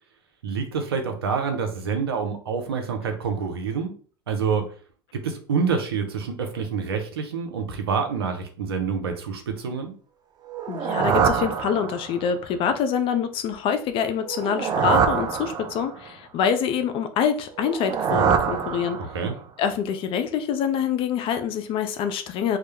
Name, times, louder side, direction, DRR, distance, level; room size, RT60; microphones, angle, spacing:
voice 1, 0.4-3.9 4.3-4.7 5.1-9.9 19.0-19.3, right 5 dB, 90° right, 5 dB, 0.5 m, -27 dB
sound 1, 10.5-12.3 14.2-16.1 17.5-19.4, right 7 dB, 30° right, 0.3 m, -25 dB
voice 2, 10.7-19.0 19.6-22.6, left 7 dB, 45° left, 9 dB, 0.4 m, -25 dB
2.2 x 2.0 x 2.9 m, 0.41 s
hypercardioid pair, 85°, 13 cm